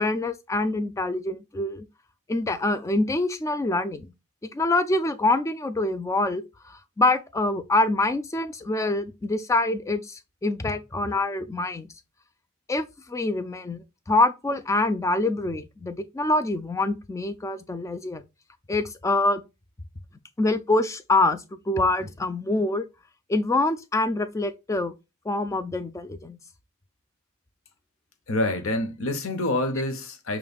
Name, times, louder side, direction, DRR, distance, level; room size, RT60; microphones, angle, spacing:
voice 1, 0.0-1.9 2.3-4.1 4.5-11.9 12.7-18.2 18.7-19.4 20.4-22.9 23.3-25.0 25.3-26.4, left 2 dB, 15° left, 0.3 m, -25 dB
voice 2, 28.3-30.4, left 1 dB, 65° left, 0.8 m, -27 dB
5.0 x 3.0 x 2.3 m
head